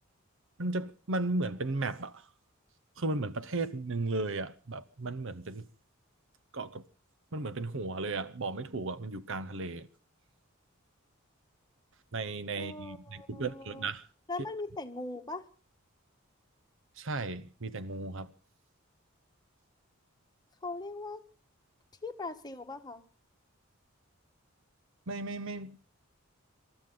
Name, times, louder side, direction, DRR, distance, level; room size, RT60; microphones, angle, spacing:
voice 1, 0.6-2.3 3.0-5.7 6.5-6.8 7.3-9.9 12.1-14.0 17.0-18.3 25.1-25.8, right 2 dB, 65° right, 0.9 m, -35 dB
voice 2, 12.6-13.9 14.3-15.5 20.6-21.2 22.0-23.0, left 3 dB, 20° left, 1.4 m, -40 dB
27.0 x 13.0 x 3.9 m
head